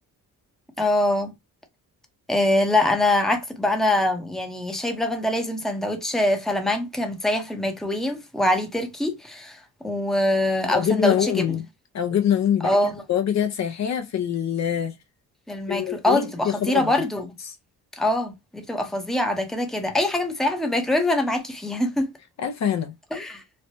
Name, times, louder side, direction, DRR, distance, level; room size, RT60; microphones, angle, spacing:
voice 1, 0.8-1.3 2.3-11.5 12.6-13.0 15.5-17.3 18.0-22.1 23.1-23.4, left 1 dB, ahead, 0.7 m, -24 dB
voice 2, 10.7-11.6 11.9-14.9 15.7-16.9 17.5-17.6 22.4-22.9, left 9 dB, 50° left, 0.6 m, -24 dB
3.1 x 2.1 x 2.6 m
cardioid pair, 120°, 36 cm